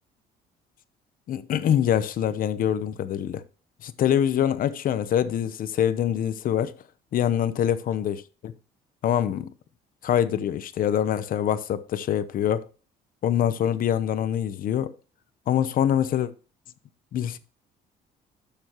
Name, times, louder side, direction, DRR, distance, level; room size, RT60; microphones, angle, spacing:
voice 1, 1.3-3.4 3.8-6.7 7.1-8.5 9.0-9.5 10.0-12.7 13.2-14.9 15.5-16.3 17.1-17.4, left 10 dB, 55° left, 0.8 m, -24 dB
12.5 x 6.9 x 3.0 m
cardioid pair, 110°, 17 cm